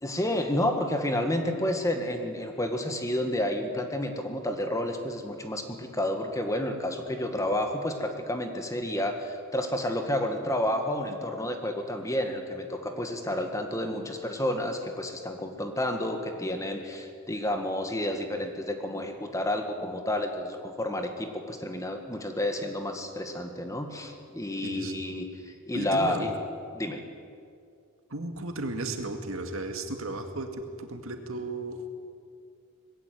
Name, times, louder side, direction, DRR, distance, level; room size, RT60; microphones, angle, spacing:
voice 1, 0.0-26.3 26.7-27.0, left 1 dB, 15° left, 5 dB, 1.7 m, -30 dB
voice 2, 24.6-24.9 25.7-26.4 28.1-31.9, right 2 dB, 70° right, 5 dB, 2.1 m, -35 dB
20.5 x 16.0 x 9.4 m, 2.3 s
head